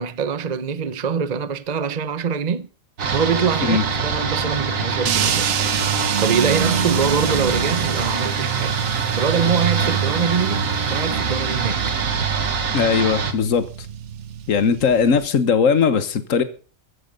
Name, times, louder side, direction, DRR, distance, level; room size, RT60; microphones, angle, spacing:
voice 1, 0.0-2.7 3.1-5.6 6.2-8.8 9.2-11.9, right 6 dB, 40° right, 0.7 m, -24 dB
sound 1, 3.0-13.3, right 5 dB, 80° right, 2.0 m, -24 dB
sound 2, 5.1-15.3, right 9 dB, 65° right, 1.1 m, -27 dB
voice 2, 12.7-13.6 14.5-16.4, left 6 dB, 75° left, 1.6 m, -18 dB
15.0 x 12.0 x 5.3 m
omnidirectional pair, 1.4 m